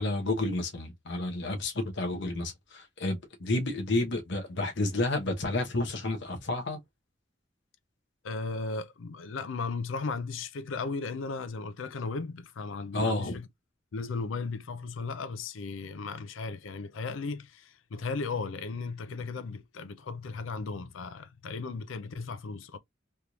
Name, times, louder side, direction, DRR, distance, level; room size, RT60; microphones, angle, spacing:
voice 1, 0.0-6.8 12.9-13.4, left 2 dB, 65° left, 1.0 m, -30 dB
voice 2, 8.2-13.5 13.9-22.8, left 4 dB, 85° left, 0.5 m, -36 dB
3.4 x 3.0 x 2.4 m
head